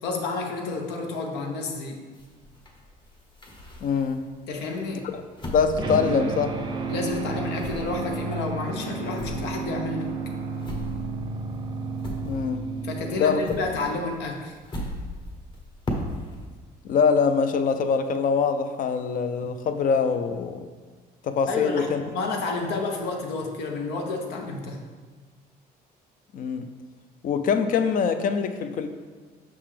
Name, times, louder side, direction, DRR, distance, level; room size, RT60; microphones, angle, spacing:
voice 1, 0.0-2.0 4.5-5.0 6.9-10.1 12.8-14.6 21.5-21.9 22.1-24.8, left 3 dB, 85° left, 2 dB, 0.9 m, -30 dB
sound 1, 2.1-4.3 4.7-6.8 7.1-12.8 13.1-16.5, left 1 dB, 30° left, 1.0 m, -37 dB
voice 2, 3.8-4.2 5.0-5.2 5.5-6.6 12.3-12.6 13.2-13.4 16.8-20.7 21.2-22.0 26.3-26.7 27.2-28.9, left 6 dB, 50° left, 8 dB, 0.5 m, -24 dB
sound 2, 5.8-14.0, right 4 dB, 25° right, 0.6 m, -32 dB
5.8 x 5.4 x 3.4 m, 1.5 s
cardioid pair, 110°, 17 cm